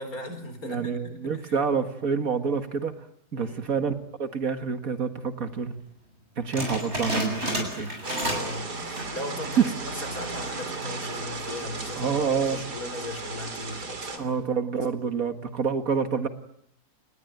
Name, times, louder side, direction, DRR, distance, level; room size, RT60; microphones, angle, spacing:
voice 1, 0.0-1.6 3.3-3.7 8.0-12.2 12.5-14.4 14.7-14.8, left 1 dB, 65° left, 9 dB, 4.9 m, -38 dB
voice 2, 0.6-2.9 3.3-3.9 4.2-5.7 6.4-7.9 9.6-9.7 11.9-12.6 14.2-16.3, right 6 dB, 60° right, 8 dB, 2.0 m, -27 dB
sound 1, 6.5-8.6 8.9-9.2 9.7-9.8 10.5-10.9, equal, 40° right, 8.1 m, -31 dB
sound 2, 8.0-14.2, right 3 dB, 90° right, 3.5 m, -35 dB
29.0 x 20.0 x 9.3 m, 0.74 s
omnidirectional pair, 1.7 m